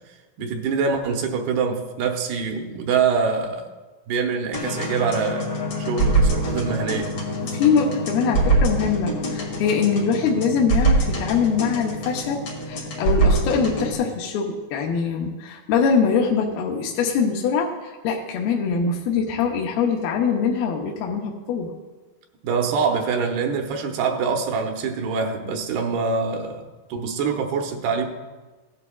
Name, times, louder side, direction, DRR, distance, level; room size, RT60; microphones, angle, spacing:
voice 1, 0.4-3.7 4.1-5.5 5.8-7.2 22.4-28.1, right 5 dB, 85° right, 3 dB, 3.0 m, -24 dB
sound 1, 4.5-13.9, right 2 dB, 40° left, 2.1 m, -24 dB
voice 2, 7.5-12.4 12.7-21.7, left 6 dB, 80° left, 0 dB, 2.7 m, -23 dB
16.0 x 11.0 x 2.3 m, 1.3 s
omnidirectional pair, 4.4 m